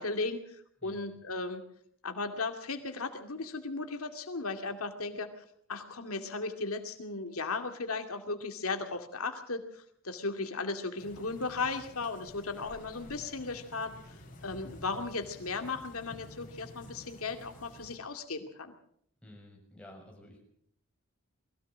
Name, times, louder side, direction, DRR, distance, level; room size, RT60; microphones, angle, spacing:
voice 1, 0.0-1.6 2.0-5.3 5.7-14.2 14.4-18.7, left 3 dB, 90° left, 6 dB, 2.3 m, -36 dB
voice 2, 0.8-1.2 19.2-20.4, left 1 dB, 5° left, -1 dB, 6.8 m, -52 dB
sound 1, 11.0-18.0, left 1 dB, 40° left, 5.2 m, -51 dB
22.5 x 16.0 x 7.5 m, 0.68 s
head